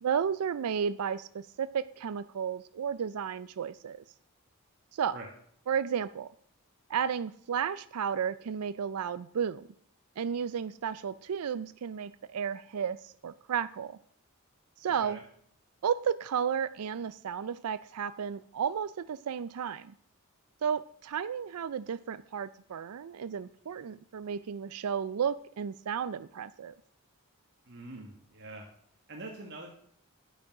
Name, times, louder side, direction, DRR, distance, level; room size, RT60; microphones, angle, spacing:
voice 1, 0.0-4.0 4.9-5.1 5.7-6.3 6.9-9.7 10.2-14.0 14.8-15.2 15.8-19.9 20.6-26.7, right 7 dB, 85° right, 14 dB, 0.4 m, -33 dB
voice 2, 27.7-28.6 29.1-29.7, right 2 dB, 50° right, 0 dB, 1.7 m, -44 dB
10.5 x 8.5 x 5.9 m, 0.66 s
head